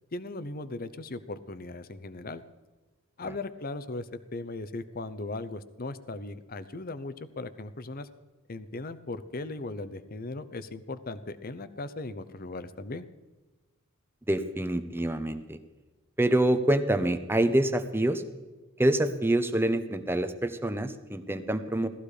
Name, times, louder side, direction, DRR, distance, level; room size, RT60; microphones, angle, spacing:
voice 1, 0.1-2.4 3.2-8.1 8.5-13.0, left 2 dB, 40° left, 12 dB, 0.8 m, -38 dB
voice 2, 14.3-15.6 16.2-18.2 18.8-21.9, right 1 dB, 10° right, 9 dB, 0.9 m, -26 dB
18.0 x 14.0 x 5.0 m, 1.2 s
head